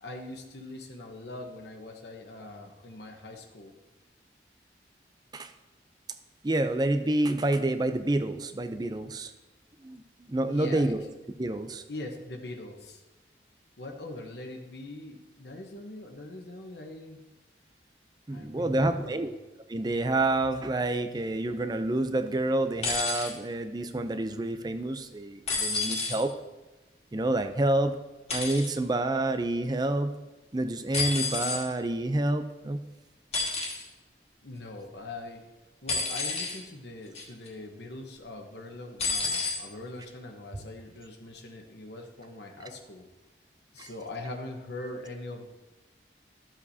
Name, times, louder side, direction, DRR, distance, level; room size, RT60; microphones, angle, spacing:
voice 1, 0.0-3.7 10.5-10.9 11.9-13.0 13.8-17.3 18.3-19.3 34.4-35.5 35.8-43.0 43.7-45.4, left 2 dB, 75° left, 3 dB, 1.1 m, -42 dB
voice 2, 6.4-9.3 9.8-11.1 11.4-11.8 18.3-19.3 19.7-26.3 27.1-28.0 28.3-30.1 30.5-32.8 43.8-43.9, right 2 dB, 25° right, 9 dB, 0.5 m, -28 dB
sound 1, 22.8-23.3 25.5-26.2 28.3-28.7 30.9-31.6 33.3-33.8 35.9-36.6 37.1-37.5 39.0-39.6 40.6-40.7, left 4 dB, 35° left, 1.8 m, -30 dB
13.5 x 7.3 x 2.8 m, 1.1 s
head